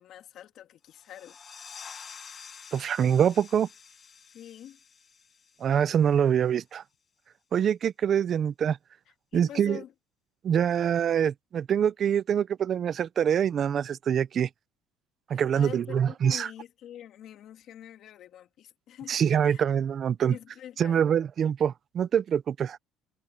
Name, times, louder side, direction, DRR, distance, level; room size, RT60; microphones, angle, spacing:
voice 1, 0.0-1.4 4.3-4.8 9.3-9.9 15.3-19.6 20.3-21.0, left 11 dB, 55° left, 2.4 m, -45 dB
sound 1, 0.9-6.3, left 6 dB, 30° left, 2.1 m, -48 dB
voice 2, 2.7-3.7 5.6-6.8 7.5-8.8 9.3-9.8 10.4-14.5 15.3-16.5 19.1-20.3 20.8-22.8, right 8 dB, 40° right, 0.7 m, -25 dB
cardioid pair, 130°, 0 cm